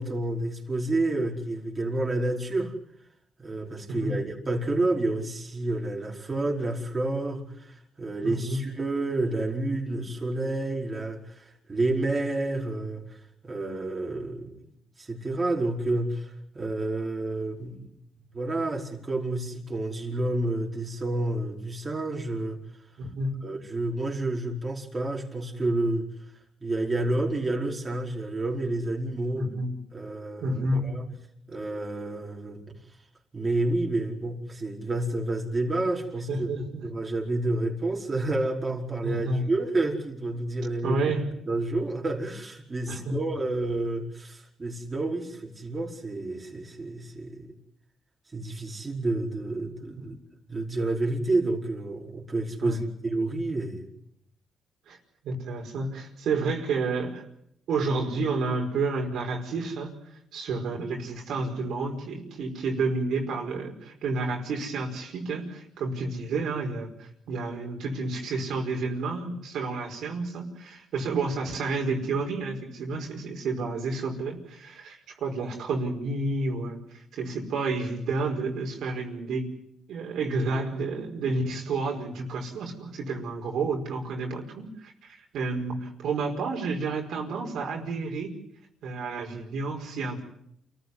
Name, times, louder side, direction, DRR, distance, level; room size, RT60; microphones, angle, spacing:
voice 1, 0.0-2.7 3.4-13.0 13.4-14.6 15.0-17.9 18.3-22.6 23.4-26.1 26.6-29.5 29.9-31.0 31.5-32.8 33.3-36.5 36.8-41.0 41.4-47.5 48.3-50.2 50.5-53.9, right 2 dB, 25° right, -1 dB, 5.0 m, -29 dB
voice 2, 3.9-4.2 8.2-8.6 23.0-23.3 29.4-29.7 30.4-30.9 36.3-36.9 39.0-39.4 40.8-41.3 42.9-43.3 50.0-50.1 52.6-52.8 54.9-55.0 55.2-57.2 57.7-59.9 60.3-79.5 79.9-88.3 88.8-90.2, right 3 dB, 75° right, 1 dB, 5.2 m, -30 dB
28.5 x 15.0 x 9.7 m, 0.74 s
cardioid pair, 90°, 0 cm